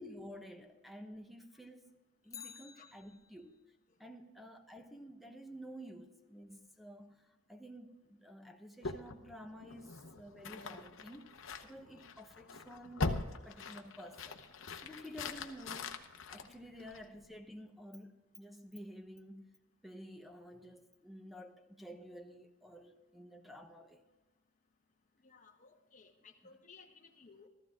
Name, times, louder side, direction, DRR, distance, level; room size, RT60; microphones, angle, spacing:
voice 1, 0.0-1.8 2.2-3.6 4.0-11.3 11.6-14.4 14.8-19.4 19.8-24.0, equal, ahead, 6 dB, 0.9 m, -51 dB
Bicycle, 2.2-3.6 12.0-12.1, left 8 dB, 15° left, 0.4 m, -53 dB
sound 1, 8.8-17.3, left 3 dB, 65° left, 0.9 m, -42 dB
voice 2, 25.2-27.5, left 4 dB, 40° left, 1 dB, 1.0 m, -59 dB
14.5 x 14.0 x 3.6 m, 1.1 s
head